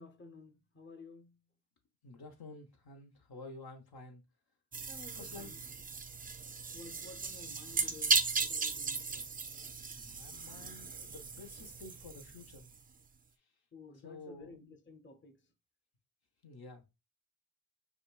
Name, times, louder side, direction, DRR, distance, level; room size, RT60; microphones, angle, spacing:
voice 1, 0.0-1.4 4.9-5.6 6.7-9.2 13.7-15.5, left 3 dB, 30° left, 0.7 m, -53 dB
voice 2, 2.0-4.2 5.2-5.5 9.9-12.7 14.0-14.8 16.4-16.9, left 3 dB, 75° left, 0.9 m, -51 dB
sound 1, 4.7-12.8, right 5 dB, 25° right, 0.4 m, -37 dB
5.0 x 2.3 x 2.3 m
cardioid pair, 65°, 38 cm